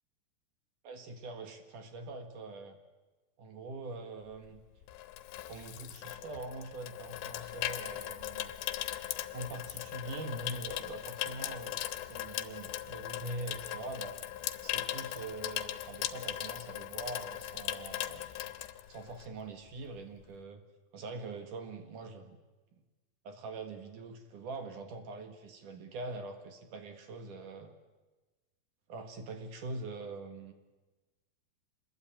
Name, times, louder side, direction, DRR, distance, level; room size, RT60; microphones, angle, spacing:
voice 1, 0.8-2.8 3.4-4.6 5.5-8.5 9.3-11.8 12.1-14.2 14.6-18.3 18.9-20.6 20.9-22.4 22.7-22.8 23.2-27.7 28.9-30.5, right 2 dB, 55° right, 6 dB, 2.7 m, -43 dB
Water tap faucet / Sink (filling or washing), 4.4-19.4 19.7-20.0, left 13 dB, 90° left, 3.4 m, -39 dB
26.5 x 21.0 x 9.0 m, 1.2 s
omnidirectional pair, 4.9 m